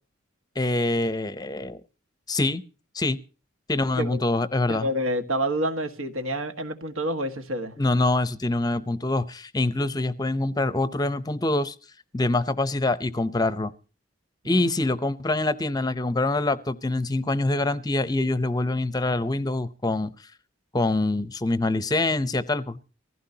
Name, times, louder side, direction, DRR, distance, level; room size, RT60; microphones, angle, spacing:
voice 1, 0.6-1.8 2.3-2.6 2.9-3.2 3.7-4.9 7.8-11.7 12.1-13.7 14.4-20.1 20.7-22.8, left 2 dB, 20° left, 0.6 m, -25 dB
voice 2, 4.7-7.7 14.4-14.7, right 1 dB, 85° right, 1.6 m, -28 dB
23.0 x 15.5 x 2.8 m
head